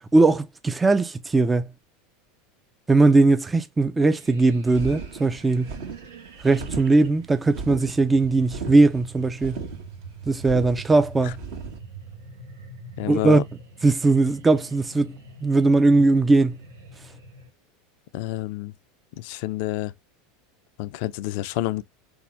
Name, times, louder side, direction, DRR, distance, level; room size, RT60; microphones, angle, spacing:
voice 1, 0.1-1.7 2.9-5.7 6.4-9.6 10.3-11.4 13.1-13.4 13.8-15.1 15.4-16.6, right 3 dB, 15° right, 0.5 m, -19 dB
sound 1, 4.0-17.5, right 3 dB, 90° right, 1.2 m, -44 dB
sound 2, 4.7-11.8, right 4 dB, 70° right, 1.8 m, -37 dB
voice 2, 13.0-13.4 18.1-18.7 19.2-19.9 20.8-21.8, left 16 dB, 65° left, 0.5 m, -28 dB
4.1 x 3.5 x 3.1 m
hypercardioid pair, 85°, 0 cm